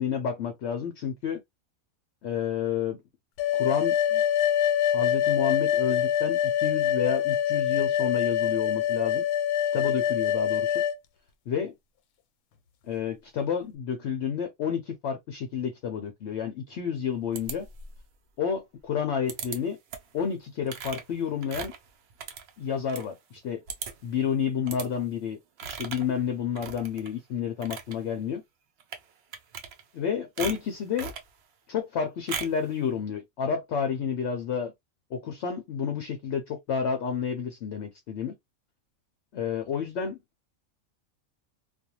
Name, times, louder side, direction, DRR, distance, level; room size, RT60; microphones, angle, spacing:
voice 1, 0.0-1.4 2.2-3.0 3.5-4.2 4.9-9.2 9.7-10.8 11.5-11.7 12.9-17.7 18.4-19.8 20.1-21.7 22.6-23.6 24.0-25.4 25.7-28.4 29.9-31.1 31.7-34.7 35.1-38.3 39.3-40.2, left 7 dB, 65° left, 0.7 m, -30 dB
sound 1, 3.4-11.0, left 10 dB, 90° left, 1.1 m, -25 dB
sound 2, 17.4-18.1 19.3-19.6 19.9-20.2 20.7-23.1 23.4-23.5 23.7-24.1 24.7-24.9 25.6-26.1 26.6-27.1 27.5-28.0 28.8-29.0 29.3-30.0 30.4-31.3 32.3-32.6, right 7 dB, 65° right, 0.6 m, -38 dB
2.5 x 2.2 x 2.8 m
omnidirectional pair, 1.5 m